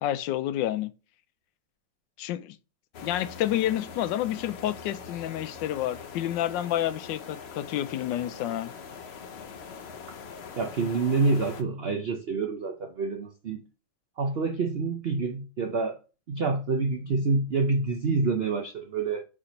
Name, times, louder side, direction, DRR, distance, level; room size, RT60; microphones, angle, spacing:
voice 1, 0.0-0.9 2.2-2.5 3.0-8.7, left 12 dB, 85° left, 1.3 m, -29 dB
sound 1, 2.9-11.6, left 5 dB, 55° left, 0.7 m, -43 dB
voice 2, 10.6-13.6 14.2-16.0 16.3-19.3, right 3 dB, 65° right, 0.6 m, -27 dB
4.9 x 4.4 x 5.1 m
omnidirectional pair, 1.9 m